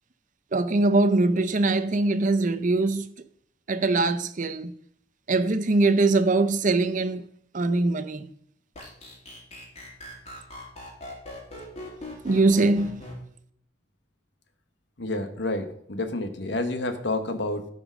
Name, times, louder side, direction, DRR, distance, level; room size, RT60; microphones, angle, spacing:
voice 1, 0.5-3.1 3.7-4.7 5.3-7.2 7.5-8.3 12.2-13.0, right 2 dB, 40° right, 0.6 m, -22 dB
sound 1, 8.7-13.1, left 1 dB, 35° left, 2.9 m, -40 dB
voice 2, 15.0-17.7, left 2 dB, 60° left, 1.2 m, -29 dB
12.5 x 5.1 x 6.3 m
head